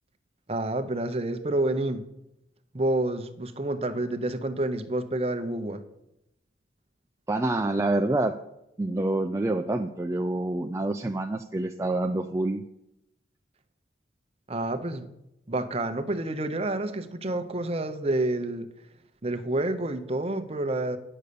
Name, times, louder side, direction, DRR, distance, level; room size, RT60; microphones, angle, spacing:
voice 1, 0.5-2.0 2.7-5.8 14.5-15.1 15.5-18.7 19.2-21.0, right 2 dB, 30° right, 0.7 m, -29 dB
voice 2, 7.3-8.4 8.8-12.6, right 2 dB, 15° right, 0.3 m, -27 dB
9.9 x 6.4 x 6.8 m
head